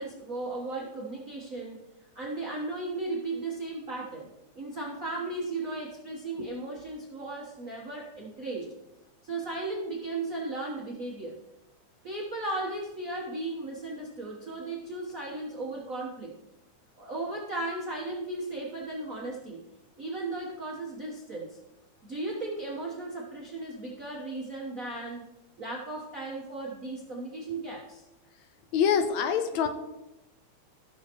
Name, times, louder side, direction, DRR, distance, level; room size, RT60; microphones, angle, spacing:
voice 1, 0.0-1.8 2.1-4.3 4.5-8.7 9.2-11.3 12.0-16.3 17.0-19.6 20.0-21.6 22.0-25.3 25.6-28.0, right 2 dB, 55° right, -4 dB, 0.9 m, -36 dB
voice 2, 28.7-29.7, left 7 dB, 80° left, 8 dB, 2.0 m, -25 dB
16.0 x 6.5 x 3.0 m, 0.96 s
omnidirectional pair, 3.3 m